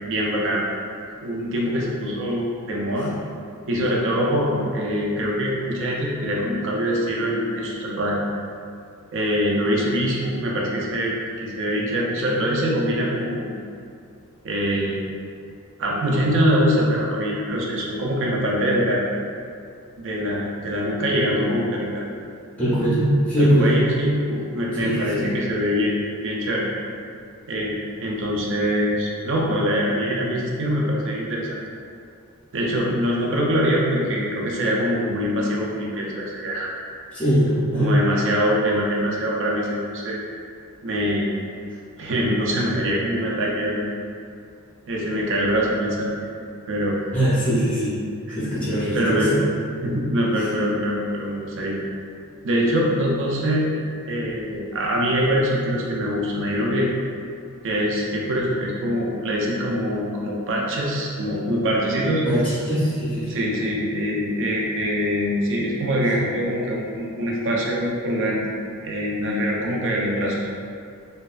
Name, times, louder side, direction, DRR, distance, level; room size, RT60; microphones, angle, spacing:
voice 1, 0.1-0.6 1.2-3.1 3.7-8.2 9.1-13.5 14.4-15.0 15.8-19.0 20.0-22.1 23.4-26.0 26.2-26.7 27.5-31.6 32.5-36.7 37.7-40.2 40.8-41.3 42.0-43.9 44.9-46.1 46.7-47.0 48.1-48.4 48.9-49.3 49.8-51.8 52.4-53.7 54.1-56.9 57.6-62.2 63.3-68.5 68.8-70.4, equal, 55° right, -3 dB, 0.5 m, -23 dB
voice 2, 22.6-23.8 24.7-25.3 37.1-37.9 47.1-48.0 48.3-49.4 62.2-63.4, equal, 5° left, -10 dB, 0.6 m, -21 dB
2.7 x 2.2 x 2.3 m, 2.3 s
head